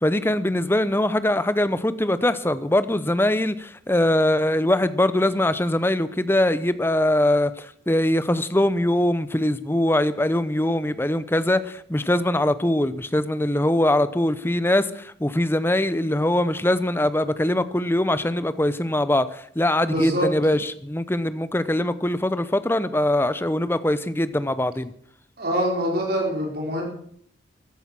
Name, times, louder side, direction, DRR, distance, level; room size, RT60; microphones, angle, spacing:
voice 1, 0.0-24.9, left 1 dB, 10° left, 0.8 m, -22 dB
voice 2, 19.8-20.3 25.4-26.9, equal, 55° right, 4.6 m, -24 dB
14.5 x 12.0 x 7.6 m
head